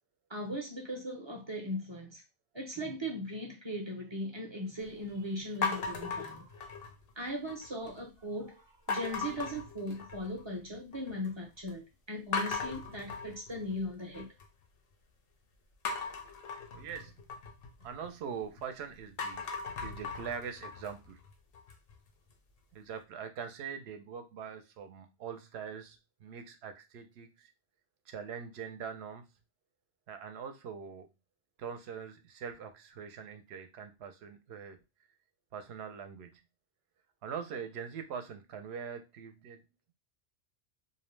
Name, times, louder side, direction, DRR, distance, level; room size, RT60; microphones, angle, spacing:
voice 1, 0.3-2.2 2.5-6.5 7.2-14.3, equal, 35° right, 0.5 m, -38 dB
sound 1, 5.6-7.1 7.5-8.0 8.9-10.4 10.7-11.3 11.7-11.8 12.3-14.4 15.8-18.6 19.0-21.9, left 5 dB, 60° left, 0.7 m, -38 dB
voice 2, 16.7-17.2 17.8-19.6 19.8-21.2 22.7-27.5 28.1-29.3 30.1-31.1 31.6-34.8 35.5-36.4 37.2-39.6, right 7 dB, 70° right, 0.8 m, -43 dB
2.6 x 2.0 x 3.1 m
omnidirectional pair, 1.2 m